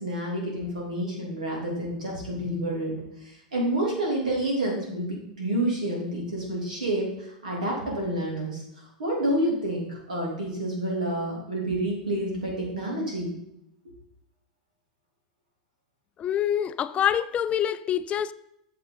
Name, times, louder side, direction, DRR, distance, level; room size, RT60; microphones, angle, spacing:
voice 1, 0.0-2.9 3.2-13.3, right 1 dB, 85° right, 3.3 m, -29 dB
voice 2, 16.2-18.3, left 10 dB, 30° left, 0.4 m, -26 dB
8.4 x 6.8 x 4.1 m
hypercardioid pair, 100°, 4 cm